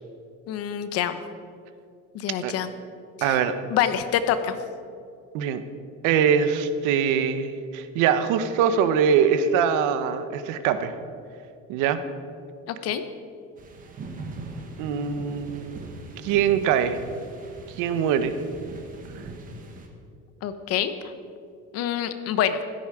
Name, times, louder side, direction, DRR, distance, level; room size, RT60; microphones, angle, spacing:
voice 1, 0.5-1.2 2.1-2.7 3.2-3.4 3.7-4.6 12.7-13.0 20.4-20.9 21.7-22.6, left 10 dB, 55° left, 10 dB, 1.0 m, -26 dB
voice 2, 3.2-3.6 5.3-5.6 6.0-10.9 11.7-12.0 14.8-15.8 16.2-17.0 17.8-18.3, right 7 dB, 90° right, 10 dB, 1.2 m, -23 dB
sound 1, 13.6-19.9, right 2 dB, 30° right, 1.6 m, -41 dB
15.5 x 13.5 x 5.0 m, 2.4 s
cardioid pair, 180°, 29 cm